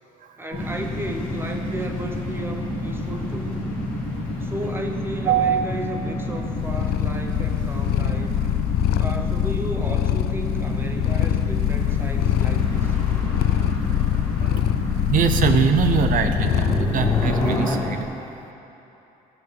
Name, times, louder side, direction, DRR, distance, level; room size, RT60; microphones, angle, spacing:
voice 1, 0.4-3.7 4.4-8.3 9.0-13.0, right 1 dB, 15° right, 3 dB, 0.8 m, -34 dB
sound 1, 0.5-18.0, left 1 dB, 40° left, 1.7 m, -29 dB
sound 2, 0.6-17.8, left 2 dB, 5° left, 2.1 m, -34 dB
voice 2, 5.2-5.6 14.4-14.6 15.1-18.0, right 7 dB, 60° right, 7 dB, 0.8 m, -22 dB
Purr, 6.4-17.7, left 13 dB, 90° left, 0.4 m, -24 dB
15.5 x 5.5 x 7.9 m, 3.0 s
cardioid pair, 165°, 16 cm